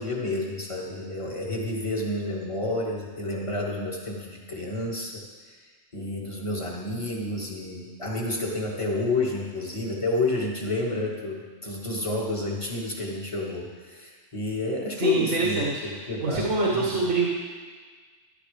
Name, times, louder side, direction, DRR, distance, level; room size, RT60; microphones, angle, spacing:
voice 1, 0.0-5.6 5.9-17.1, left 2 dB, 25° left, -2 dB, 1.7 m, -30 dB
voice 2, 15.0-17.3, right 3 dB, 85° right, -4 dB, 1.7 m, -26 dB
13.5 x 12.0 x 3.4 m, 1.5 s
omnidirectional pair, 1.3 m